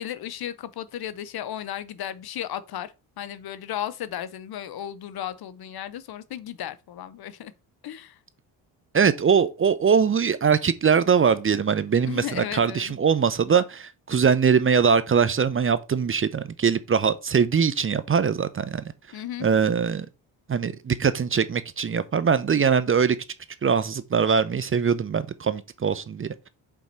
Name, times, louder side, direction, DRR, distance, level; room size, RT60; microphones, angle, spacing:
voice 1, 0.0-7.5 7.8-8.2 12.1-12.9 19.1-19.5, left 11 dB, 55° left, 0.8 m, -35 dB
voice 2, 8.9-18.8 19.4-20.1 20.5-23.2 23.6-26.5, right 6 dB, 30° right, 0.6 m, -22 dB
5.3 x 4.8 x 4.5 m
supercardioid pair, 75°, 44 cm